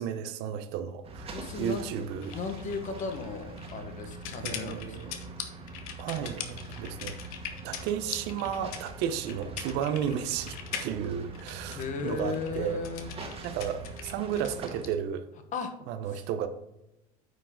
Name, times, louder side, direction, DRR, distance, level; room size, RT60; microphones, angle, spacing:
voice 1, 0.0-2.3 4.4-5.1 6.0-7.2 7.6-12.8 13.4-15.3 15.9-16.5, right 8 dB, 65° right, 10 dB, 0.8 m, -33 dB
sound 1, 1.0-14.8, right 3 dB, 30° right, 1.8 m, -43 dB
voice 2, 1.3-1.8 2.3-5.0 11.7-13.2 15.5-15.7 16.1-16.2, left 5 dB, 45° left, 7 dB, 1.4 m, -35 dB
sound 2, 2.2-14.9, left 9 dB, 85° left, 1.0 m, -41 dB
9.4 x 4.6 x 3.8 m, 0.90 s
supercardioid pair, 100°, 19 cm